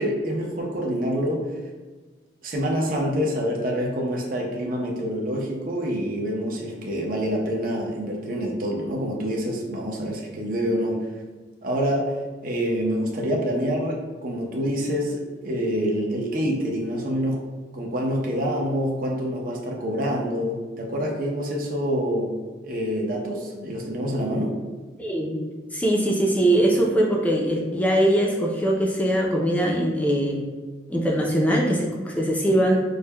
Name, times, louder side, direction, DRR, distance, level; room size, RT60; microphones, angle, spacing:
voice 1, 0.0-1.4 2.4-11.0 11.6-12.1 12.4-17.4 17.7-22.3 22.6-24.5, equal, 50° right, -1 dB, 0.7 m, -26 dB
voice 2, 25.0-25.4 25.7-30.4 30.9-32.8, right 1 dB, 10° left, -1 dB, 0.5 m, -21 dB
6.3 x 2.2 x 2.2 m, 1.3 s
head